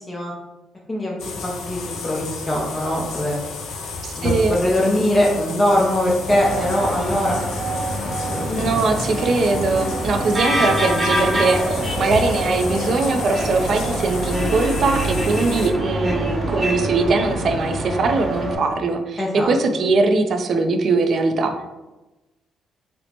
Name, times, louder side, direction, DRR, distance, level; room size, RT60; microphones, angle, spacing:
sound 1, 1.2-15.7, left 4 dB, 75° left, 0.4 m, -32 dB
voice 1, 1.4-3.3 4.2-7.4 8.0-9.1 19.2-19.5, left 1 dB, 20° left, -2 dB, 0.6 m, -22 dB
voice 2, 4.0-4.6 8.6-21.5, right 3 dB, 55° right, 6 dB, 0.4 m, -21 dB
sound 2, 6.3-18.5, right 1 dB, 20° right, 0.9 m, -25 dB
4.2 x 2.0 x 2.8 m, 1.1 s
cardioid pair, 90°, 0 cm